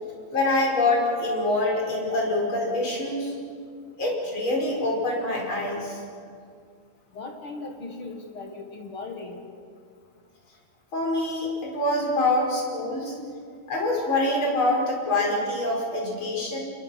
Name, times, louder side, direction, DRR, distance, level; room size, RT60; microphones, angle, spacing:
voice 1, 0.3-3.3 4.0-6.0 10.9-13.2 13.7-16.6, left 2 dB, 30° left, -1 dB, 5.5 m, -25 dB
voice 2, 7.1-9.5, left 3 dB, 55° left, 3 dB, 1.5 m, -38 dB
28.0 x 22.0 x 5.8 m, 2.2 s
omnidirectional pair, 4.6 m